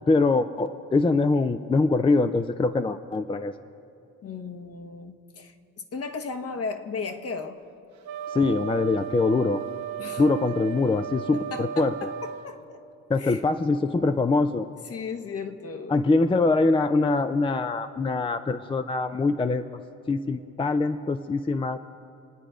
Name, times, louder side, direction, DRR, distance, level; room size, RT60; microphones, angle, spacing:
voice 1, 0.1-3.5 8.3-9.6 10.2-12.1 13.1-14.7 15.9-19.6 20.1-21.8, left 3 dB, 15° left, 10 dB, 0.5 m, -23 dB
voice 2, 4.2-5.5 5.9-7.6 10.0-10.2 11.3-12.8 13.2-13.4 14.9-16.0, left 4 dB, 50° left, 6 dB, 1.2 m, -35 dB
Wind instrument woodwind instrument, 8.0-12.5, right 8 dB, 70° right, 1.1 m, -35 dB
26.5 x 9.3 x 5.0 m, 2.7 s
cardioid pair, 90°, 30 cm